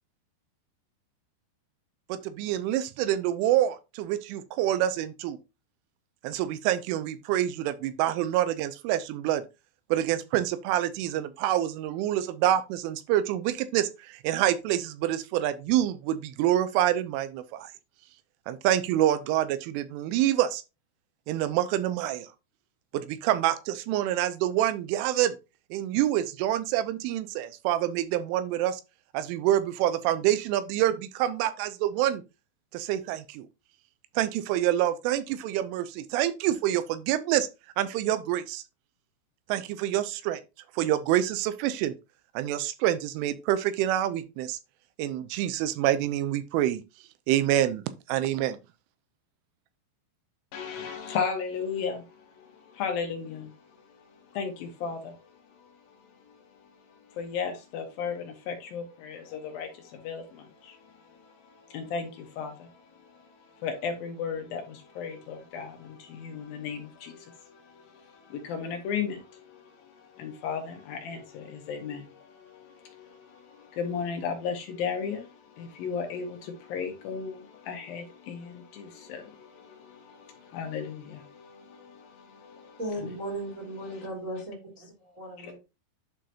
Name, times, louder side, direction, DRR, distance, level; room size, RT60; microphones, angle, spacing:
voice 1, 2.1-5.4 6.2-9.4 9.9-17.7 18.5-20.6 21.3-22.3 22.9-25.4 25.7-28.8 29.1-32.2 32.7-33.5 34.2-37.5 37.8-38.6 39.5-40.4 40.8-41.9 42.4-44.6 45.0-46.8 47.3-48.6, right 12 dB, 85° right, 3.2 m, -27 dB
voice 2, 50.5-53.6 53.9-55.7 56.2-56.7 57.1-83.4 83.8-84.1 85.4-85.5, left 6 dB, 70° left, 2.3 m, -36 dB
voice 3, 82.8-85.5, right 1 dB, 25° right, 1.7 m, -37 dB
11.5 x 3.9 x 2.8 m
omnidirectional pair, 5.5 m